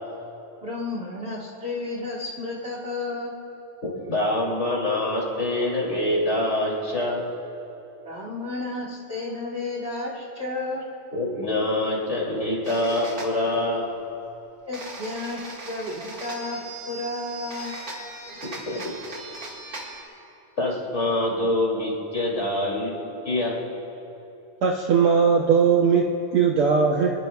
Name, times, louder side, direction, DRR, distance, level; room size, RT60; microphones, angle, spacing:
voice 1, 0.6-3.3 8.0-10.8 14.7-16.6 16.9-17.8, left 2 dB, 70° right, -5 dB, 0.6 m, -32 dB
voice 2, 4.1-7.2 11.1-13.9 18.4-19.0 20.6-22.9 23.2-23.6, left 1 dB, 20° left, -4 dB, 2.7 m, -25 dB
sound 1, 12.6-13.3 14.7-20.0, right 2 dB, 35° right, 1.7 m, -39 dB
voice 3, 24.6-26.0 26.3-27.1, right 6 dB, 85° right, -1 dB, 1.2 m, -19 dB
26.0 x 20.5 x 2.4 m, 3.0 s
omnidirectional pair, 3.8 m